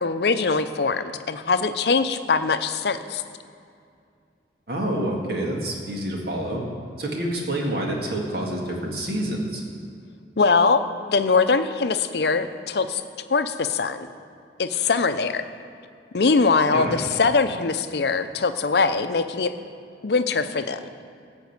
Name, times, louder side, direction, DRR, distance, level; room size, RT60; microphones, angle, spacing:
voice 1, 0.0-3.2 10.4-10.8 11.1-13.0 13.3-14.1 14.6-15.4 16.1-19.5 20.0-20.8, left 4 dB, 65° left, 10 dB, 0.6 m, -22 dB
voice 2, 4.7-6.6 7.0-9.6 16.7-17.0, right 1 dB, 60° right, -1 dB, 2.0 m, -27 dB
15.5 x 5.4 x 8.1 m, 2.4 s
head